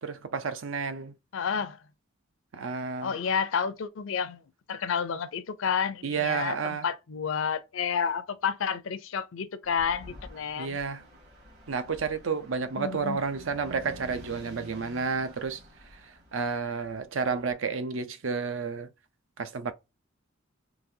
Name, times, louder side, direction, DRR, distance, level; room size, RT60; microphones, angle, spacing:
voice 1, 0.0-1.1 2.5-3.1 6.0-6.9 10.6-11.0 11.7-15.6 16.3-18.9 19.4-19.7, right 5 dB, 70° right, 0.6 m, -31 dB
voice 2, 1.3-1.8 3.0-4.4 4.7-10.8 12.8-13.2, left 6 dB, 70° left, 0.5 m, -30 dB
sound 1, 9.6-17.0 17.3-17.5, left 1 dB, 50° right, 1.7 m, -49 dB
4.0 x 2.7 x 2.7 m
head